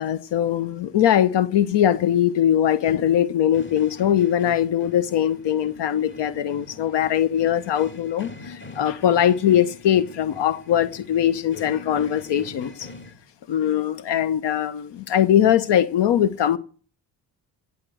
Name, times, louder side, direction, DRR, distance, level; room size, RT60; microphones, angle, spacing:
voice 1, 0.0-12.9 13.5-16.6, left 10 dB, 75° left, 0.9 m, -21 dB
sound 1, 3.5-13.1, left 3 dB, 25° left, 2.5 m, -43 dB
17.0 x 7.5 x 7.8 m
supercardioid pair, 60°, 43 cm